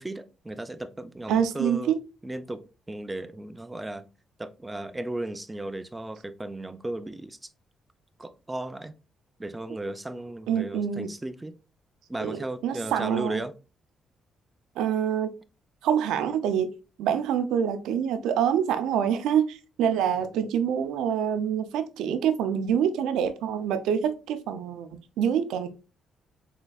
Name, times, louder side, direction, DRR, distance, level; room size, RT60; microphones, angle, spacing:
voice 1, 0.0-1.9 2.2-4.1 4.4-7.4 8.2-8.9 9.4-11.5 12.1-13.5 20.2-20.6, right 1 dB, 15° right, 0.4 m, -35 dB
voice 2, 1.3-2.0 10.5-11.1 12.2-13.4 14.8-15.3 15.8-25.7, right 8 dB, 90° right, 0.5 m, -26 dB
4.0 x 3.8 x 2.3 m
cardioid pair, 90°, 0 cm